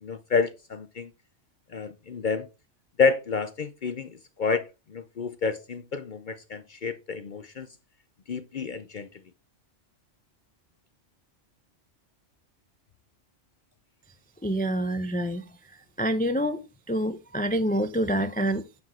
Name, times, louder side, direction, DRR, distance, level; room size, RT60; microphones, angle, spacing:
voice 1, 0.0-1.1 1.7-2.5 3.0-7.7 8.3-9.1, left 5 dB, 50° left, 0.7 m, -29 dB
voice 2, 14.4-15.4 16.0-16.6 16.9-18.8, right 1 dB, 15° left, 0.3 m, -27 dB
9.6 x 5.0 x 4.3 m
omnidirectional pair, 1.2 m